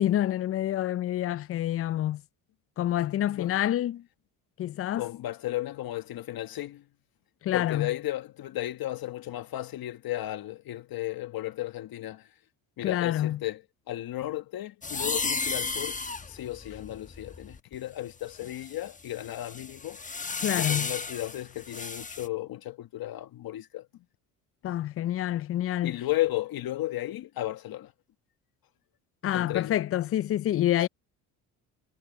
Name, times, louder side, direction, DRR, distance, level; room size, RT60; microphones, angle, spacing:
voice 1, 0.0-2.2 2.8-4.0 4.6-5.1 7.4-7.9 12.8-13.4 20.4-20.9 24.6-25.9 29.2-30.9, left 12 dB, 35° left, 0.4 m, -27 dB
voice 2, 4.9-6.8 7.5-12.3 12.8-13.6 13.9-16.0 16.3-20.0 20.6-23.9 25.8-27.9 29.3-29.7, left 15 dB, 60° left, 1.6 m, -34 dB
sound 1, 14.8-17.7 18.4-22.3, left 4 dB, 20° left, 1.1 m, -34 dB
supercardioid pair, 65°, 40 cm